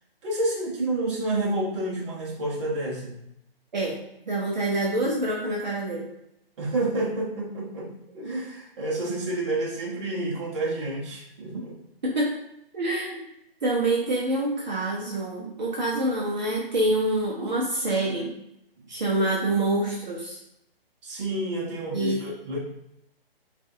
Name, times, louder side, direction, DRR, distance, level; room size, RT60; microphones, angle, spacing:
voice 1, 0.2-3.1 6.6-11.7 21.0-22.6, right 2 dB, 30° right, -5 dB, 1.1 m, -29 dB
voice 2, 4.3-6.1 12.1-12.3 12.7-13.2 13.6-18.3 18.9-20.4 21.9-22.2, right 2 dB, 50° right, -5 dB, 0.9 m, -26 dB
4.6 x 2.7 x 2.5 m, 0.79 s
figure-of-eight pair, 140°, 30 cm